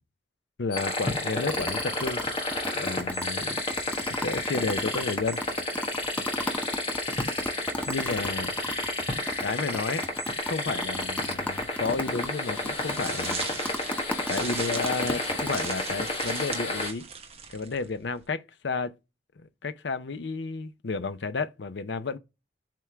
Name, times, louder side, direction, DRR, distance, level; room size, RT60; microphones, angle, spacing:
voice 1, 0.6-2.2 2.7-3.6 4.1-5.4 7.9-8.5 9.4-10.0 10.5-13.5 14.3-17.1 17.5-18.9 19.6-22.2, left 4 dB, 70° left, 0.6 m, -32 dB
sound 1, 0.7-16.9, left 2 dB, 30° left, 1.3 m, -31 dB
sound 2, 1.5-9.4 9.7-9.8 10.0-15.7, left 1 dB, 10° left, 0.6 m, -34 dB
sound 3, 12.6-18.2, right 6 dB, 35° right, 0.9 m, -39 dB
7.5 x 3.6 x 3.5 m
head